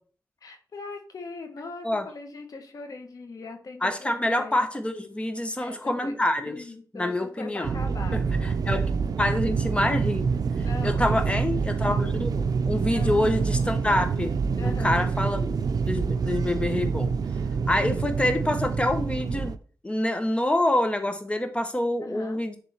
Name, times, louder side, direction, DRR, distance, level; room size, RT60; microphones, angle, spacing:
voice 1, 0.4-4.6 5.6-6.1 6.5-8.5 10.5-11.2 12.0-12.1 12.9-13.3 14.6-15.1 22.0-22.4, left 3 dB, 70° left, 4 dB, 1.5 m, -40 dB
voice 2, 3.8-6.6 6.9-7.8 8.1-8.9 9.2-10.3 10.8-15.5 15.9-17.1 17.7-19.5 19.8-22.6, left 1 dB, 20° left, 7 dB, 1.3 m, -26 dB
sound 1, 7.6-19.6, right 5 dB, 80° right, 0.5 m, -26 dB
10.5 x 3.7 x 4.4 m, 0.42 s
wide cardioid pair, 90°, 6 cm